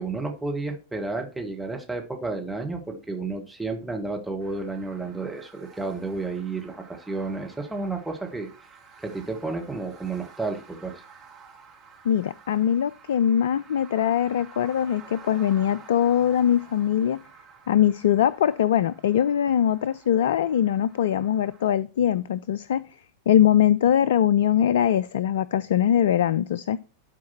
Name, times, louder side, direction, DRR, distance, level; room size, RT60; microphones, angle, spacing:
voice 1, 0.0-8.5 9.0-11.0, right 3 dB, 5° right, 2 dB, 1.5 m, -31 dB
sound 1, 4.4-21.7, right 6 dB, 25° right, 3.3 m, -51 dB
voice 2, 12.0-17.2 17.7-22.8 23.3-26.8, left 10 dB, 60° left, 18 dB, 0.3 m, -22 dB
12.0 x 4.7 x 4.3 m, 0.33 s
figure-of-eight pair, 90°, 0 cm